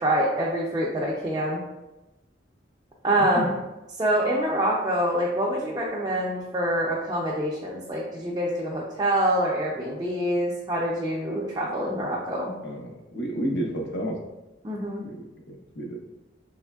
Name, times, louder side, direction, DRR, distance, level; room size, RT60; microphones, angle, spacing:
voice 1, 0.0-1.6 3.0-3.5 4.0-12.5 14.6-15.0, right 1 dB, 20° right, -4 dB, 0.4 m, -25 dB
voice 2, 3.1-3.5 12.6-14.2 15.0-16.0, right 1 dB, 70° left, 1 dB, 0.6 m, -31 dB
3.4 x 3.0 x 2.2 m, 1.0 s
head